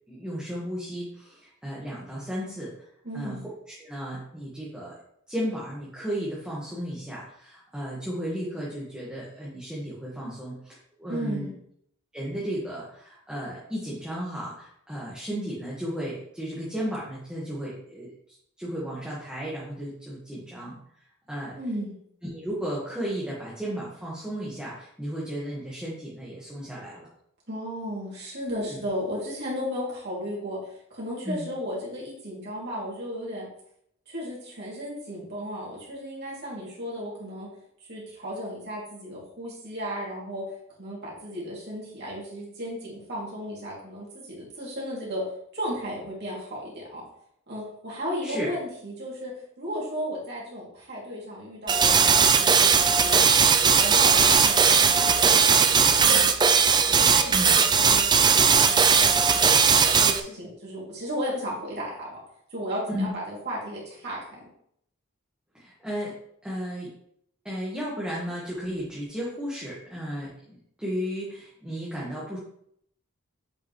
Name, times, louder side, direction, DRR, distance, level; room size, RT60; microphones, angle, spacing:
voice 1, 0.1-2.7 3.1-3.4 3.8-4.9 5.3-11.5 12.1-20.8 21.3-21.6 22.2-27.1 28.7-28.8 31.2-31.5 48.2-48.5 57.3-57.5 62.9-63.1 65.5-66.2 66.4-66.9 67.4-72.4, equal, 5° right, -7 dB, 1.5 m, -34 dB
voice 2, 3.0-3.4 11.1-11.5 21.5-21.9 27.5-33.5 34.1-37.5 37.8-40.4 40.8-45.2 45.5-47.0 47.5-49.3 49.6-53.2 53.6-62.2 62.5-64.5, equal, 50° right, -5 dB, 2.8 m, -35 dB
sound 1, 51.7-60.2, right 6 dB, 20° right, 0.4 m, -19 dB
7.8 x 5.2 x 3.2 m, 0.69 s
head